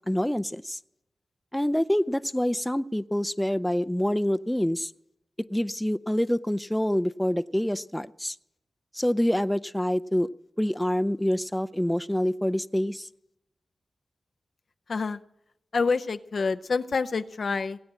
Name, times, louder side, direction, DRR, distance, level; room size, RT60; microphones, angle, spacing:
voice 1, 0.1-0.8 1.5-4.9 5.5-8.4 8.9-10.3 10.6-13.1, equal, 10° left, 13 dB, 0.4 m, -26 dB
voice 2, 14.9-15.2 15.7-17.8, left 4 dB, 70° left, 10 dB, 0.6 m, -27 dB
17.5 x 8.7 x 7.3 m, 0.84 s
cardioid pair, 50°, 0 cm